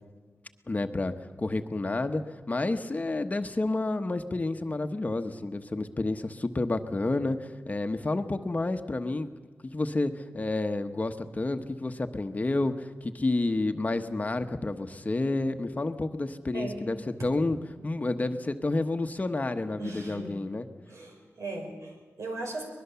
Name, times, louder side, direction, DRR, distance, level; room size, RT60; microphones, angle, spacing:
voice 1, 0.7-9.3 9.7-17.0 17.2-17.6 17.8-20.6, left 2 dB, 30° left, 7 dB, 1.2 m, -30 dB
voice 2, 19.8-20.4 20.9-22.6, right 2 dB, 80° right, 2 dB, 5.6 m, -38 dB
24.0 x 21.0 x 7.0 m, 1.4 s
wide cardioid pair, 105°, 5 cm